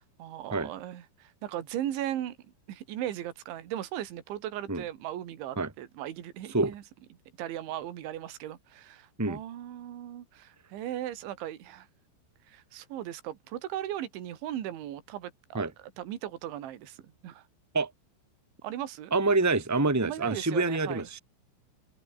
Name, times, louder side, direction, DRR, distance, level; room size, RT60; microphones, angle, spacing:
voice 1, 0.2-2.4 2.7-6.8 7.4-11.9 12.5-15.7 16.0-17.4 18.6-19.1 20.0-21.1, right 12 dB, 65° right, 4.6 m, -37 dB
voice 2, 19.1-21.2, right 3 dB, 5° right, 2.8 m, -26 dB
omnidirectional pair, 6.0 m